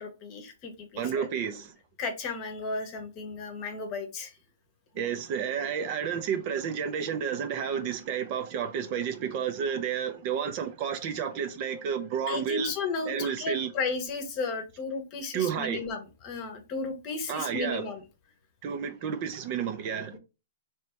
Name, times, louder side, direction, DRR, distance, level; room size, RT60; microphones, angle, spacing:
voice 1, 0.0-1.3 2.0-4.3 12.3-18.0, left 4 dB, 30° left, 0.9 m, -34 dB
voice 2, 1.0-1.7 4.9-12.7 13.0-13.7 15.3-15.8 17.3-17.8 18.6-20.2, right 7 dB, 35° right, 0.5 m, -31 dB
3.3 x 2.9 x 4.4 m
hypercardioid pair, 155°, 0 cm